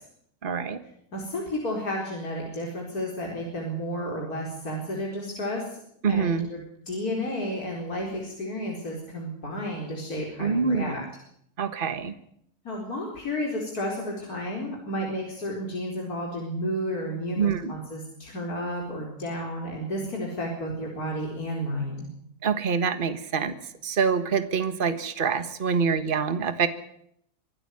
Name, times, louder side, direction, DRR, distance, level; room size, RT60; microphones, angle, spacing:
voice 1, 0.4-0.8 6.0-6.5 10.4-10.9 11.6-12.2 17.4-17.7 22.4-23.5 23.8-26.7, right 6 dB, 35° right, 11 dB, 1.5 m, -25 dB
voice 2, 1.1-5.8 6.1-11.0 12.6-22.1, equal, 70° left, -1 dB, 4.9 m, -32 dB
25.0 x 12.5 x 9.6 m, 0.70 s
omnidirectional pair, 1.7 m